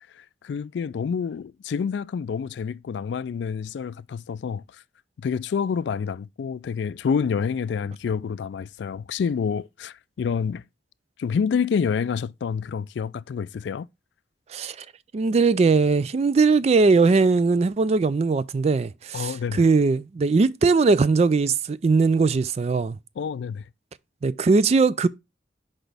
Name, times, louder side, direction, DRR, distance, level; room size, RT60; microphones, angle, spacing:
voice 1, 0.1-4.8 5.2-10.6 11.2-13.9 19.1-19.7 23.2-23.7, left 6 dB, 70° left, 0.3 m, -28 dB
voice 2, 15.1-23.0 24.2-25.1, right 4 dB, 35° right, 0.3 m, -20 dB
5.9 x 5.2 x 3.3 m
head